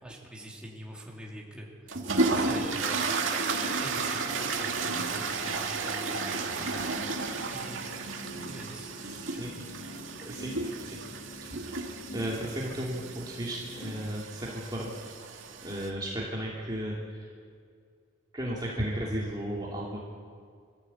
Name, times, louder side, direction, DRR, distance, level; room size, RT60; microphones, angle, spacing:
voice 1, 0.0-2.0 2.3-3.4 3.8-6.6 7.5-8.0 8.4-8.9 9.3-9.8, right 1 dB, 5° right, -3 dB, 3.3 m, -44 dB
sound 1, 1.9-15.9, right 3 dB, 80° right, 2.2 m, -33 dB
sound 2, 2.0-13.9, left 1 dB, 70° left, 3.9 m, -46 dB
voice 2, 9.0-9.5 10.2-10.5 10.8-11.0 11.7-14.9 15.6-17.3 18.3-20.0, equal, 20° right, -5 dB, 2.5 m, -35 dB
24.5 x 14.5 x 8.4 m, 2.2 s
head